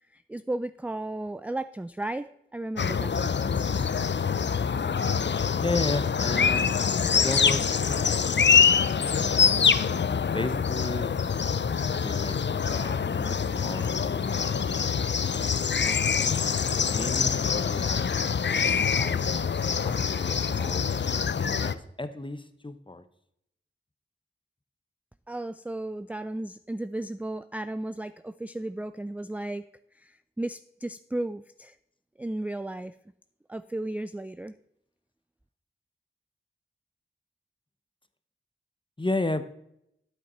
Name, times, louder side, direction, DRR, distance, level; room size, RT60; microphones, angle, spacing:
voice 1, 0.1-3.9 25.3-29.7 29.9-31.8 32.2-33.0 33.5-34.6, right 1 dB, 5° right, 13 dB, 0.3 m, -34 dB
sound 1, 2.8-21.7, left 6 dB, 60° left, 0.5 m, -25 dB
voice 2, 5.6-6.8 7.1-8.5 8.8-9.4 10.3-11.2 11.7-14.7 15.7-16.1 16.5-19.4 19.8-20.8 21.3-23.0 39.0-39.4, left 2 dB, 25° left, 11 dB, 0.9 m, -34 dB
9.4 x 8.0 x 4.4 m, 0.76 s
wide cardioid pair, 45°, 21 cm